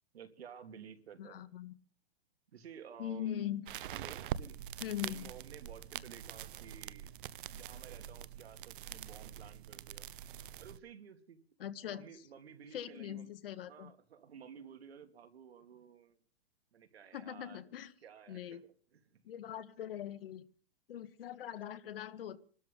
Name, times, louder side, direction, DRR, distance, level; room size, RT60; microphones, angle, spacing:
voice 1, 0.1-1.4 2.5-3.4 3.9-4.6 5.0-7.1 7.5-10.1 10.6-11.4 11.8-13.3 13.7-16.2 16.7-17.6 18.0-19.2, right 7 dB, 85° right, 2.8 m, -54 dB
voice 2, 1.2-1.7 3.0-3.7 4.8-5.2 11.6-12.1 12.7-13.9 17.1-17.9 18.3-18.6 19.2-20.4 20.9-22.4, left 11 dB, 65° left, 1.8 m, -41 dB
sound 1, 3.7-10.8, right 10 dB, 55° right, 0.9 m, -44 dB
26.5 x 13.0 x 3.8 m
hypercardioid pair, 155°, 31 cm